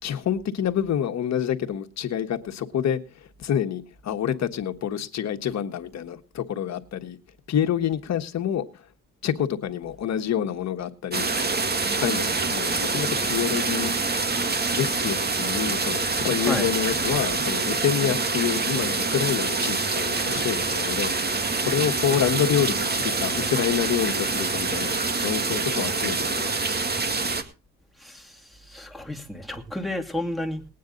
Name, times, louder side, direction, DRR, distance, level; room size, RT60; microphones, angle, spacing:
voice 1, 0.0-3.0 3.4-7.2 7.5-8.6 9.2-11.3 12.0-14.0 14.7-21.3 21.6-26.7, left 9 dB, 60° left, 1.5 m, -27 dB
sound 1, 11.1-27.4, right 3 dB, 35° right, 2.0 m, -26 dB
voice 2, 28.0-30.7, left 1 dB, ahead, 2.5 m, -32 dB
20.0 x 9.3 x 4.0 m
cardioid pair, 90°, 30 cm